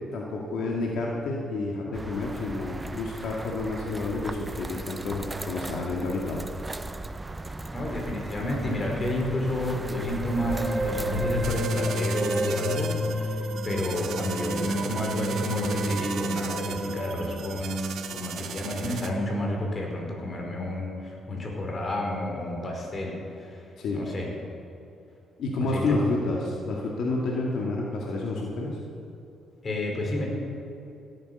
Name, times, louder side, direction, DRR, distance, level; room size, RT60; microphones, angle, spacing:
voice 1, 0.0-6.4 23.8-24.0 25.4-28.8, left 2 dB, 75° left, -2 dB, 2.1 m, -29 dB
sound 1, 1.9-11.7, right 2 dB, 20° right, 0.7 m, -37 dB
voice 2, 7.7-24.3 25.6-25.9 29.6-30.3, left 1 dB, 35° left, 0 dB, 4.7 m, -30 dB
sound 2, 9.5-17.4, equal, 50° right, 2.5 m, -30 dB
sound 3, 11.4-19.1, right 8 dB, 70° right, 1.2 m, -38 dB
16.5 x 10.5 x 6.9 m, 2.8 s
cardioid pair, 90°, 0 cm